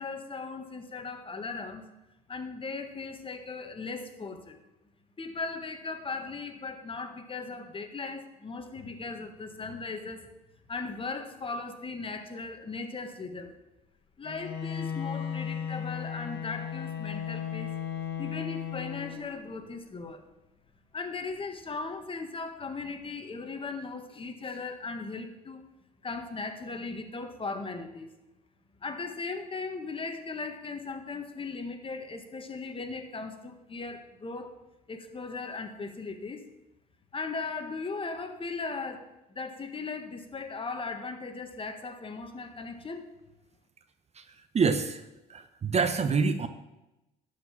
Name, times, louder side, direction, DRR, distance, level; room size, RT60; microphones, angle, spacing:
voice 1, 0.0-1.9 2.3-4.6 5.2-10.3 10.7-13.5 14.2-17.7 18.2-20.2 20.9-25.6 26.0-28.1 28.8-34.5 34.9-36.4 37.1-43.0, left 4 dB, 30° left, 7 dB, 1.5 m, -38 dB
Bowed string instrument, 14.2-19.6, left 8 dB, 60° left, 1.7 m, -36 dB
voice 2, 44.5-45.0 45.3-46.5, right 5 dB, 35° right, 10 dB, 0.9 m, -26 dB
11.5 x 5.3 x 7.3 m, 0.97 s
hypercardioid pair, 65°, 19 cm